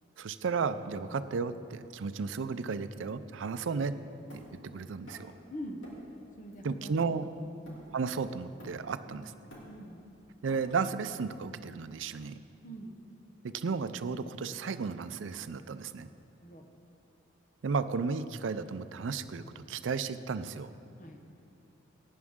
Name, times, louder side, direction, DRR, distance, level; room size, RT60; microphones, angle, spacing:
voice 1, 0.2-4.0 4.3-5.3 6.6-7.3 7.9-9.3 10.4-12.4 13.4-16.1 17.6-20.7, right 5 dB, 80° right, 12 dB, 0.5 m, -34 dB
Hammer, 4.3-5.4 5.8-6.2 6.5-8.1 8.6-9.0 9.3-11.0, equal, 80° left, 2.9 m, -52 dB
voice 2, 5.5-5.8 6.4-6.9 7.6-7.8 9.1-9.3 9.7-10.0 12.6-13.0 16.4-16.6 21.0-21.2, equal, 45° left, 4 dB, 1.0 m, -44 dB
17.5 x 9.5 x 3.7 m, 2.5 s
head